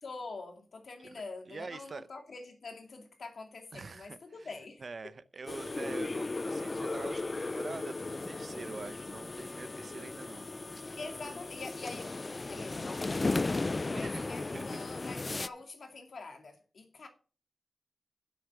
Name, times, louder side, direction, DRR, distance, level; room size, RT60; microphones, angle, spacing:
voice 1, 0.0-5.1 11.0-17.1, left 3 dB, 70° left, 2.3 m, -45 dB
voice 2, 1.5-2.1 3.7-4.2 4.8-10.4 13.9-14.3 14.5-14.7, right 4 dB, 55° right, 0.7 m, -45 dB
sound 1, 5.5-15.5, left 3 dB, 35° left, 0.4 m, -36 dB
8.2 x 6.3 x 6.9 m
wide cardioid pair, 105°, 0 cm